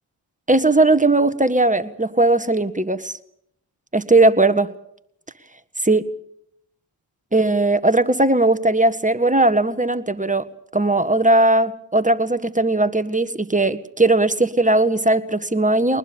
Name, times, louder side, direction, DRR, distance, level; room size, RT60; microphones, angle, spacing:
voice 1, 0.5-3.1 3.9-4.7 5.9-6.0 7.3-10.4 10.7-16.0, right 2 dB, 15° right, 11 dB, 1.6 m, -18 dB
22.5 x 20.0 x 7.1 m, 0.73 s
supercardioid pair, 40°, 50 cm